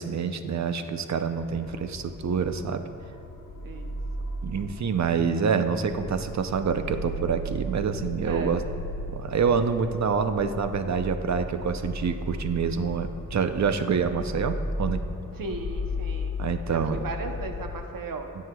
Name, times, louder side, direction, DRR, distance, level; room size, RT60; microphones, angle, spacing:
voice 1, 0.0-2.8 4.4-8.6 9.1-15.0 16.4-17.0, right 6 dB, 55° right, 8 dB, 0.5 m, -27 dB
sound 1, 1.4-17.8, left 1 dB, 85° left, 1.1 m, -35 dB
voice 2, 3.6-3.9 8.2-8.6 15.3-16.4 16.7-18.3, right 3 dB, 90° right, 5 dB, 0.8 m, -36 dB
16.5 x 6.3 x 2.3 m, 2.7 s
wide cardioid pair, 100°, 33 cm